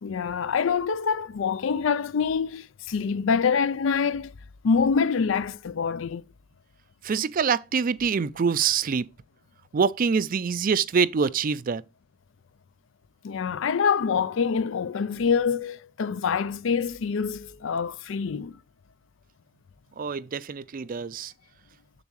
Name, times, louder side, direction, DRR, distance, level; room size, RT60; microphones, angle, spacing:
voice 1, 0.0-4.3 4.6-6.2 13.2-18.5, left 6 dB, 65° left, 0.4 m, -25 dB
voice 2, 7.0-9.0 9.7-11.8 20.0-21.3, right 6 dB, 45° right, 0.4 m, -25 dB
7.3 x 6.9 x 3.1 m
head